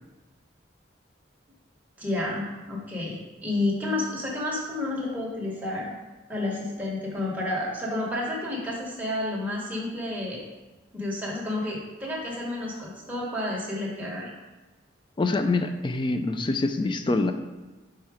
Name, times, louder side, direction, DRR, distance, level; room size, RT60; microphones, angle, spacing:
voice 1, 2.0-5.9 6.3-10.4 10.9-14.3, left 2 dB, 10° right, -4 dB, 1.1 m, -30 dB
voice 2, 15.2-17.3, left 3 dB, 25° left, 8 dB, 0.3 m, -25 dB
4.8 x 4.3 x 4.8 m, 1.2 s
head